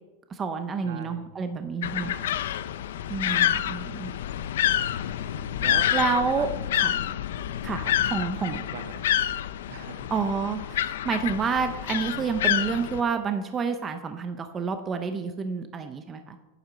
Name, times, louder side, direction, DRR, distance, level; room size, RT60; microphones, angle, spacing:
voice 1, 0.3-2.2 3.1-4.1 5.9-6.5 6.7-7.0 7.6-8.6 10.1-16.4, right 5 dB, 15° right, 8 dB, 0.6 m, -29 dB
voice 2, 0.8-1.2 2.0-2.4 3.1-3.6 5.6-6.7 7.7-9.1 9.4-10.1, right 7 dB, 65° right, 9 dB, 1.2 m, -43 dB
sound 1, 1.8-13.0, left 11 dB, 75° left, 0.6 m, -28 dB
9.1 x 7.5 x 6.7 m, 1.1 s
supercardioid pair, 170°, 0 cm